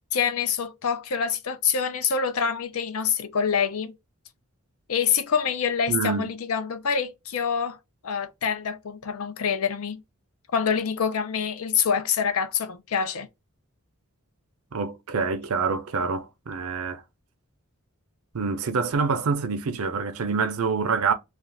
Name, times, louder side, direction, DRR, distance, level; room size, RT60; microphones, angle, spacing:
voice 1, 0.1-3.9 4.9-7.8 8.0-10.0 10.5-13.3, left 6 dB, 80° left, 0.5 m, -26 dB
voice 2, 5.9-6.3 14.7-17.0 18.3-21.1, right 5 dB, 85° right, 0.6 m, -26 dB
2.4 x 2.4 x 3.3 m
head